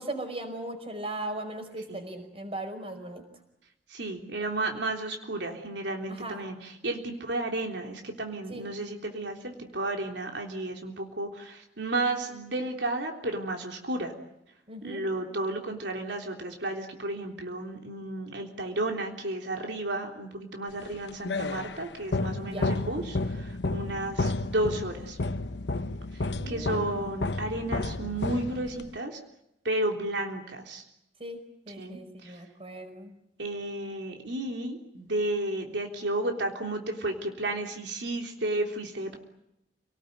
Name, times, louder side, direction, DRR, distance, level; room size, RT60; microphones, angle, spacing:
voice 1, 0.0-3.2 6.1-6.4 8.5-8.7 14.7-15.0 22.4-22.7 26.3-27.0 31.2-31.4 31.7-33.2, right 1 dB, 35° right, 6 dB, 5.4 m, -38 dB
voice 2, 3.9-14.1 14.8-25.2 26.1-29.2 29.6-30.8 31.8-32.4 33.4-39.2, right 2 dB, 85° right, 2 dB, 3.5 m, -32 dB
sound 1, 20.8-29.0, left 2 dB, 75° left, 1.0 m, -32 dB
29.0 x 19.0 x 9.3 m, 0.83 s
head